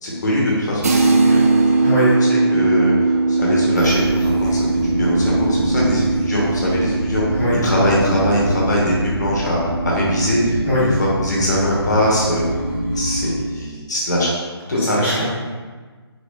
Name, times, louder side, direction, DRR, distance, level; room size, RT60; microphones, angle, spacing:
voice 1, 0.0-1.4 2.3-2.9 3.3-7.2 7.6-10.9 11.2-12.4 12.9-14.4 14.7-15.2, equal, 40° left, -5 dB, 0.9 m, -21 dB
sound 1, 0.8-10.5, right 3 dB, 35° right, 0.3 m, -20 dB
voice 2, 1.8-2.2 7.3-7.6 10.6-10.9 14.8-15.2, left 1 dB, 10° left, -12 dB, 0.9 m, -20 dB
sound 2, 3.8-13.3, equal, 75° right, 1.4 m, -25 dB
4.1 x 3.2 x 2.3 m, 1.5 s
figure-of-eight pair, 150°, 14 cm